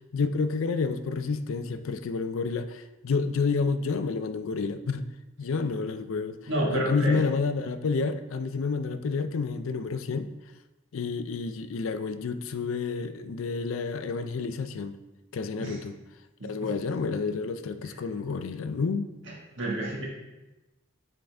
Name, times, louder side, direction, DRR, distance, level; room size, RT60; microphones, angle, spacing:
voice 1, 0.0-5.1 5.4-6.4 6.7-10.3 10.9-15.0 15.3-16.0 16.4-19.1, left 4 dB, 80° left, 11 dB, 0.4 m, -29 dB
voice 2, 6.5-7.2 15.6-15.8 16.4-16.7 19.6-20.1, right 1 dB, 65° right, -3 dB, 1.4 m, -29 dB
8.7 x 3.9 x 3.4 m, 1.1 s
head